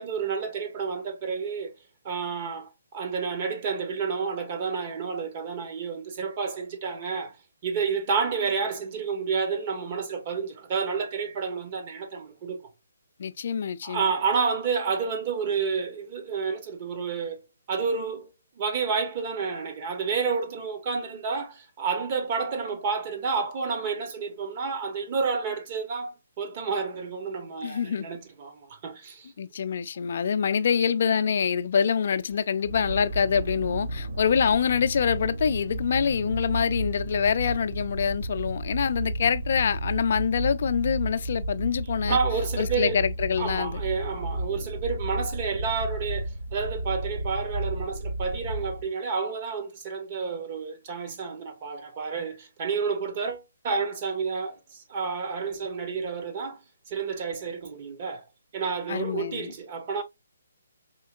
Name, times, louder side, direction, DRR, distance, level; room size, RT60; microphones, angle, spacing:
voice 1, 0.0-1.7 2.0-7.3 7.6-12.6 13.8-17.4 17.7-18.3 18.6-29.3 42.1-43.0 43.4-56.6 56.9-58.2 58.5-60.0, right 5 dB, 35° right, 0.9 m, -30 dB
voice 2, 13.2-14.1 27.6-28.1 29.4-42.2 42.6-43.8 58.9-59.5, left 7 dB, 50° left, 0.4 m, -25 dB
sound 1, 32.6-48.9, right 1 dB, 65° right, 0.7 m, -33 dB
4.4 x 2.8 x 2.4 m
figure-of-eight pair, 140°, 0 cm